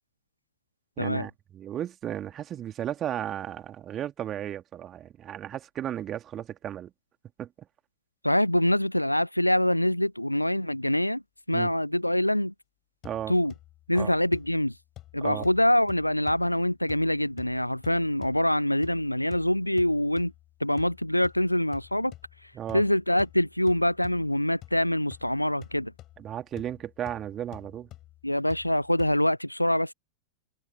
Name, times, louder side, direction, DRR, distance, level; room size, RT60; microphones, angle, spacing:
voice 1, 1.0-6.9 7.4-7.5 11.5-11.7 13.0-13.3 13.9-14.1 15.2-15.5 22.5-22.8 26.2-27.9, right 11 dB, 30° right, 2.8 m, -34 dB
voice 2, 8.2-11.2 11.5-12.5 13.3-13.5 13.9-14.7 15.1-20.3 20.6-22.1 22.7-25.9 28.2-29.9, left 1 dB, 90° left, 0.4 m, -25 dB
sound 1, 13.0-29.2, left 15 dB, 35° left, 7.1 m, -50 dB
figure-of-eight pair, 90°, 0 cm